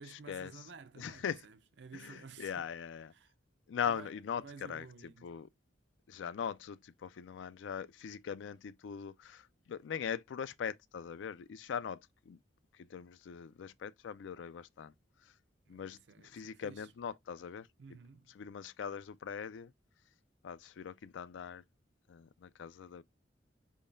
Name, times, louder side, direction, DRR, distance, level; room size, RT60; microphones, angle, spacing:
voice 1, 0.0-2.7 3.1-3.3 3.8-5.4 15.7-16.9 17.8-18.3, right 5 dB, 70° right, 0.6 m, -53 dB
voice 2, 1.0-1.4 1.9-3.1 3.7-4.8 5.2-5.5 6.1-12.0 12.3-12.4 12.8-14.9 15.7-16.0 16.2-17.7 18.4-19.7 20.4-21.6 22.1-23.0, left 7 dB, 85° left, 0.4 m, -41 dB
4.5 x 3.6 x 2.5 m
head